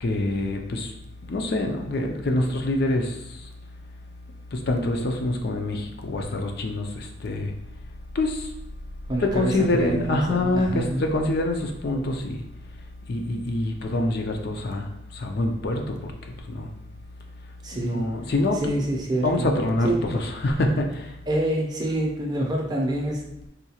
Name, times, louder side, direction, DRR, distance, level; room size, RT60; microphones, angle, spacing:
voice 1, 0.0-0.9 1.3-3.1 4.7-6.9 7.2-7.5 8.2-8.4 9.2-12.2 13.1-14.8 15.2-15.8 16.5-16.7 17.8-18.8 19.2-20.9, left 2 dB, 55° left, 3 dB, 0.4 m, -25 dB
voice 2, 9.1-11.0 17.6-18.0 18.6-19.5 19.8-20.1 21.3-23.2, right 1 dB, 20° right, -1 dB, 0.5 m, -26 dB
3.7 x 2.3 x 2.8 m, 0.87 s
head